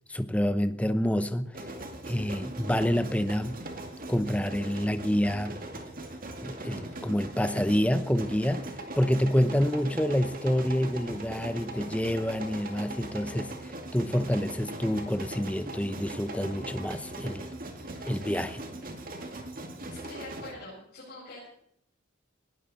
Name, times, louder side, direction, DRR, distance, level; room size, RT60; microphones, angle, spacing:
voice 1, 0.1-1.7 2.1-3.6 4.1-5.6 6.4-8.7 9.0-17.5 18.1-18.6, equal, 5° left, 0.8 m, -28 dB
sound 1, 1.5-20.5, right 1 dB, 40° right, 2.3 m, -40 dB
voice 2, 19.9-21.5, left 1 dB, 45° left, 7.2 m, -44 dB
20.0 x 16.5 x 4.3 m
head